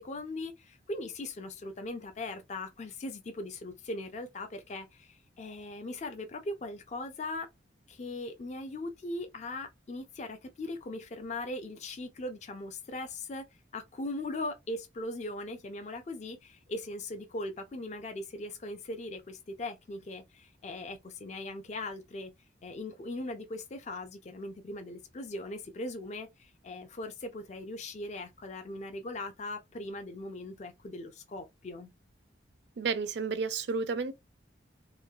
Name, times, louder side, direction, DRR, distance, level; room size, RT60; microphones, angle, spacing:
voice 1, 0.0-7.5 7.9-13.5 13.7-22.3 22.6-31.9, left 2 dB, 35° left, 0.4 m, -39 dB
voice 2, 32.8-34.1, right 5 dB, 60° right, 0.4 m, -31 dB
3.0 x 2.3 x 2.3 m
head